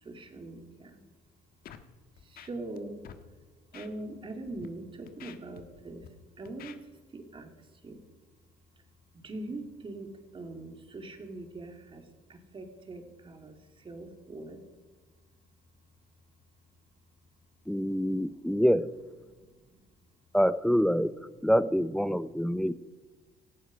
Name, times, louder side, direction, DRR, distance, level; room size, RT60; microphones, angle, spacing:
voice 1, 0.0-1.0 2.2-3.0 3.7-6.1 6.4-6.8 7.1-7.5 7.8-8.0 9.2-14.6 19.4-19.8, right 2 dB, 30° right, 5 dB, 2.7 m, -42 dB
Scratching (performance technique), 1.6-1.9 2.2-2.8 3.0-3.2 3.7-3.9 4.4-4.7 5.1-6.1 6.5-6.8, left 9 dB, 60° left, 1.4 m, -48 dB
voice 2, 17.7-18.9 20.3-22.7, equal, 5° left, 17 dB, 0.5 m, -26 dB
18.0 x 14.5 x 5.1 m, 1.3 s
cardioid pair, 110°, 17 cm